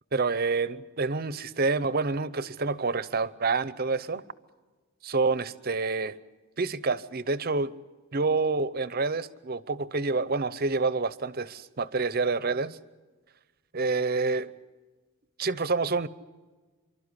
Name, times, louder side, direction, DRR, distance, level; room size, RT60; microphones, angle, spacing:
voice 1, 0.1-4.2 5.0-6.2 6.6-7.7 8.1-12.8 13.7-14.5 15.4-16.1, right 3 dB, 45° right, 16 dB, 0.7 m, -28 dB
29.0 x 12.5 x 9.9 m, 1.3 s
head